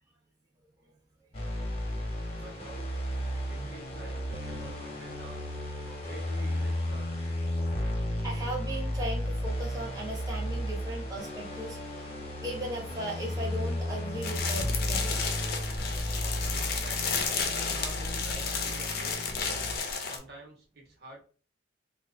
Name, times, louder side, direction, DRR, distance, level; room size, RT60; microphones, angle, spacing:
sound 1, 1.3-19.7, left 1 dB, 35° left, 0.9 m, -34 dB
voice 1, 2.4-2.9 3.5-5.5 6.0-7.1 16.2-17.3 17.7-19.3 19.7-21.2, right 1 dB, 60° right, 1 dB, 1.0 m, -48 dB
voice 2, 8.2-11.8 12.2-15.2, right 1 dB, 20° right, -3 dB, 0.8 m, -37 dB
sound 2, 14.2-20.2, left 5 dB, 55° left, 0.6 m, -32 dB
2.8 x 2.4 x 3.7 m, 0.38 s
head